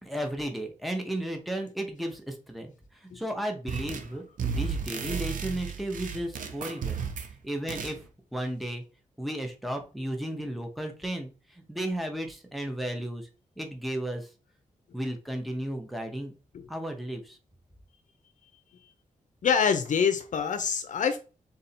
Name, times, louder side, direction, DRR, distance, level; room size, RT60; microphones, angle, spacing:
voice 1, 0.0-2.7 3.0-7.0 7.4-8.0 8.3-8.8 9.2-13.3 13.6-14.3 14.9-16.3 16.7-17.4, right 1 dB, ahead, 0.8 m, -34 dB
sound 1, 3.7-4.1 4.4-7.3 7.7-8.0, right 6 dB, 80° right, 0.6 m, -33 dB
voice 2, 19.4-21.2, left 6 dB, 70° left, 0.5 m, -25 dB
3.8 x 2.7 x 4.3 m
wide cardioid pair, 105°, 13 cm